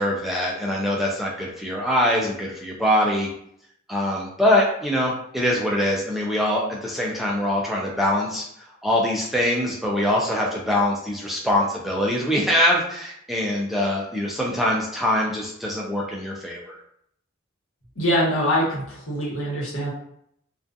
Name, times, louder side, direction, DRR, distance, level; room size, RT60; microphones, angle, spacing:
voice 1, 0.0-3.3 3.9-16.8, left 1 dB, ahead, -3 dB, 0.3 m, -23 dB
voice 2, 18.0-19.9, equal, 85° left, -5 dB, 1.1 m, -23 dB
2.3 x 2.3 x 2.5 m, 0.71 s
head